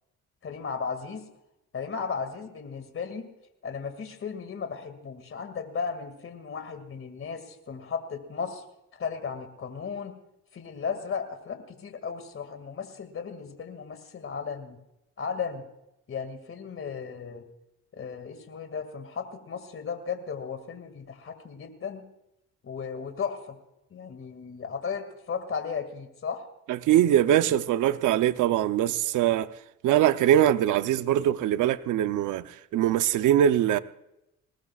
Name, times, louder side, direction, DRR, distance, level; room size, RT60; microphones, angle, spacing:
voice 1, 0.4-1.3 1.7-3.3 3.6-8.6 8.9-10.1 10.5-14.8 15.2-15.6 16.1-17.4 17.9-22.0 22.6-23.6 23.9-26.5, left 6 dB, 45° left, 2.3 m, -35 dB
voice 2, 26.7-29.5 29.8-33.8, right 11 dB, 80° right, 0.8 m, -22 dB
21.5 x 18.5 x 2.4 m
cardioid pair, 90°, 30 cm